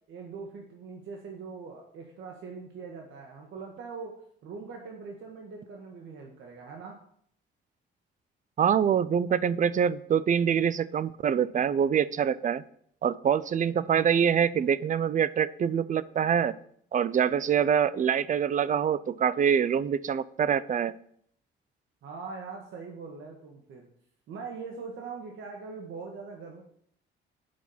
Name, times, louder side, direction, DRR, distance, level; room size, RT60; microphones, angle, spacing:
voice 1, 0.1-4.2 4.4-7.0 22.0-23.9 24.3-26.6, right 4 dB, 75° right, 1 dB, 1.6 m, -42 dB
voice 2, 8.6-12.6 13.0-16.5 16.9-20.9, right 8 dB, 40° right, 18 dB, 0.5 m, -25 dB
8.6 x 5.9 x 7.2 m, 0.65 s
cardioid pair, 105°, 20 cm